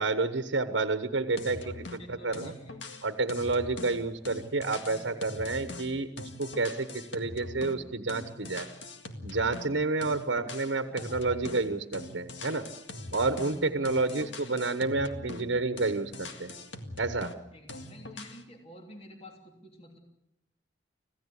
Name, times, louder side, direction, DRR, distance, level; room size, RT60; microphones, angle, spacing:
voice 1, 0.0-2.5 3.0-8.7 9.2-12.7 13.1-16.5 17.0-17.3, right 3 dB, 80° right, 9 dB, 1.2 m, -30 dB
sound 1, 1.4-2.0 2.3-9.7 10.0-11.7 11.9-15.5 15.8-17.4 17.7-18.4, left 2 dB, 75° left, 2.0 m, -42 dB
voice 2, 2.0-2.7 4.8-5.3 6.8-6.9 10.9-11.6 13.4-14.7 17.5-20.0, equal, 35° left, 2 dB, 3.1 m, -50 dB
26.5 x 16.5 x 8.4 m, 0.86 s
head